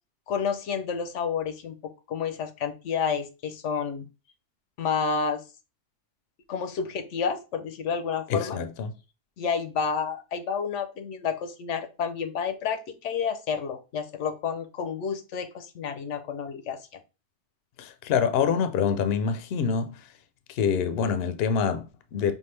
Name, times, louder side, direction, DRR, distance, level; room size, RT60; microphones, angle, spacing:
voice 1, 0.3-4.1 4.8-5.4 6.5-8.6 9.4-17.0, left 6 dB, 90° left, 1.0 m, -30 dB
voice 2, 8.3-8.9 17.8-20.0 20.5-22.3, left 6 dB, 65° left, 0.7 m, -26 dB
5.4 x 2.4 x 3.2 m
omnidirectional pair, 1.2 m